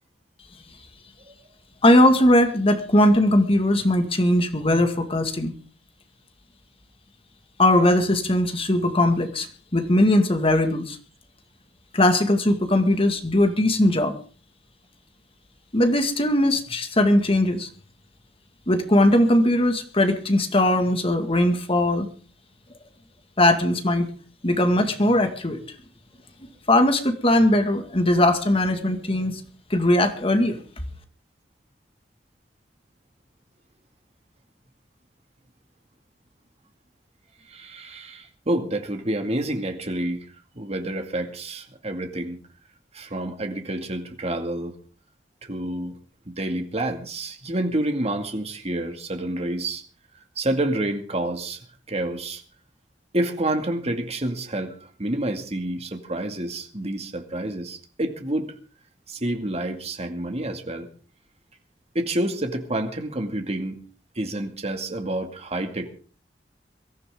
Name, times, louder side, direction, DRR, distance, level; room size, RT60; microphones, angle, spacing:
voice 1, 1.8-5.5 7.6-9.5 9.7-11.0 11.9-14.1 15.7-17.7 18.7-22.1 23.4-24.1 24.4-25.6 26.7-29.4 29.7-30.6, left 1 dB, 35° left, 6 dB, 2.1 m, -19 dB
voice 2, 37.4-40.3 40.5-42.4 42.9-44.7 45.4-46.0 46.3-49.8 50.4-52.4 53.1-58.5 59.1-60.9 61.9-63.8 64.2-65.9, right 1 dB, 40° right, 5 dB, 2.3 m, -28 dB
23.0 x 14.5 x 3.8 m, 0.40 s
head